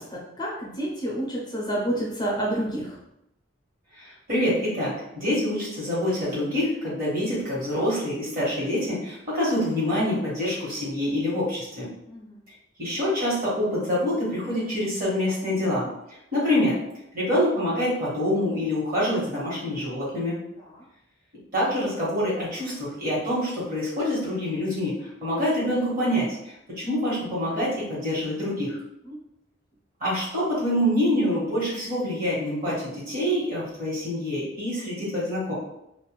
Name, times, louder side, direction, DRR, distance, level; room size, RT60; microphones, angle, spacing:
voice 1, 0.0-3.0 12.1-12.4 29.1-29.2, right 1 dB, 20° left, -4 dB, 0.5 m, -29 dB
voice 2, 4.0-11.9 12.8-15.9 16.3-16.8 17.1-20.4 21.5-24.9 25.2-26.4 26.7-28.8 30.0-35.5, left 1 dB, 45° right, -7 dB, 1.3 m, -26 dB
2.4 x 2.1 x 3.0 m, 0.82 s
head